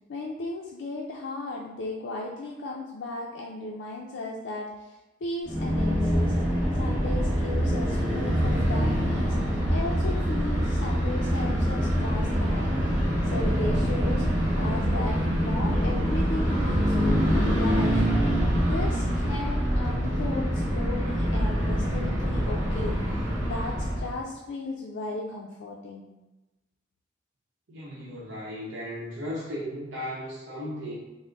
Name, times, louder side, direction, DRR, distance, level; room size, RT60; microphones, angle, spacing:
voice 1, 0.1-6.3 6.8-12.8 13.2-14.2 14.6-18.1 18.5-26.1, left 2 dB, 75° left, -2 dB, 0.4 m, -36 dB
sound 1, 5.4-24.2, equal, 20° right, 1.0 m, -25 dB
voice 2, 27.7-30.9, equal, 85° right, -6 dB, 0.7 m, -36 dB
3.3 x 2.0 x 3.7 m, 1.0 s
head